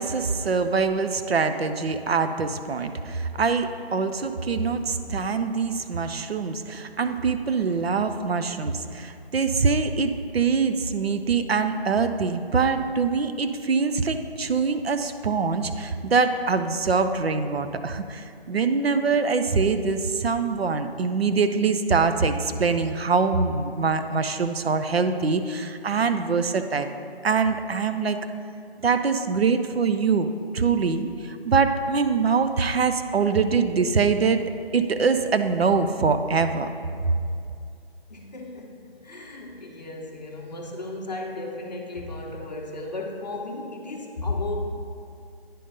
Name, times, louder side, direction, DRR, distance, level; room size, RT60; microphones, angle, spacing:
voice 1, 0.0-26.9 27.2-28.2 28.8-34.4 34.7-36.7, right 5 dB, 70° right, 8 dB, 0.6 m, -24 dB
voice 2, 38.1-44.6, left 2 dB, 40° left, 0 dB, 0.9 m, -34 dB
9.9 x 3.7 x 5.3 m, 2.4 s
figure-of-eight pair, 170°, 32 cm